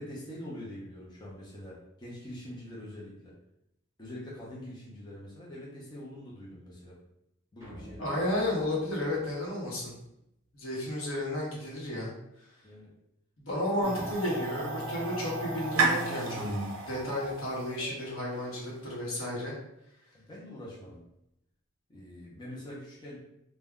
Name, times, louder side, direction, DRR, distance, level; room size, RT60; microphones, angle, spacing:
voice 1, 0.0-3.3 4.0-7.0 7.5-8.1 12.6-12.9 13.8-14.1 20.1-21.0 21.9-23.2, left 1 dB, 20° left, -6 dB, 0.5 m, -44 dB
sound 1, 7.6-10.1, left 1 dB, 15° right, 0.8 m, -50 dB
voice 2, 8.0-9.9 10.5-12.1 13.4-16.4 16.9-19.5, left 1 dB, 70° left, -4 dB, 0.9 m, -32 dB
sound 2, 13.8-18.8, right 3 dB, 70° right, 0.5 m, -33 dB
2.2 x 2.1 x 3.5 m, 0.81 s
head